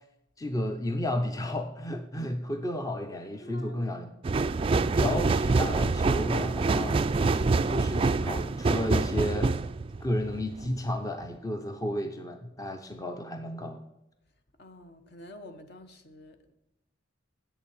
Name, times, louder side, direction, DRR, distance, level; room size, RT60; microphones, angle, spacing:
voice 1, 0.4-4.2 5.0-7.0 7.7-9.5 10.0-13.8, left 1 dB, 20° left, 0.6 m, -32 dB
voice 2, 3.4-4.0 14.6-16.5, left 1 dB, 55° left, 1.1 m, -48 dB
sound 1, 4.2-10.8 11.2-11.3, right 3 dB, 25° right, 0.3 m, -26 dB
8.3 x 7.1 x 7.1 m
head